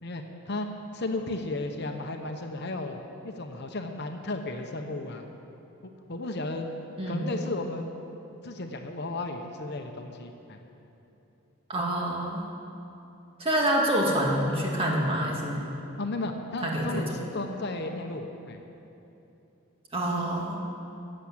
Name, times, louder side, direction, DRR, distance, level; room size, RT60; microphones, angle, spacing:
voice 1, 0.0-3.0 3.2-5.3 5.8-6.7 7.1-7.9 8.4-10.6 16.0-18.6, left 2 dB, 50° left, 4 dB, 0.9 m, -34 dB
voice 2, 11.7-12.5 13.4-15.7 16.6-17.1 19.9-20.6, right 1 dB, 25° right, -2 dB, 2.0 m, -27 dB
14.0 x 8.6 x 8.0 m, 2.9 s
head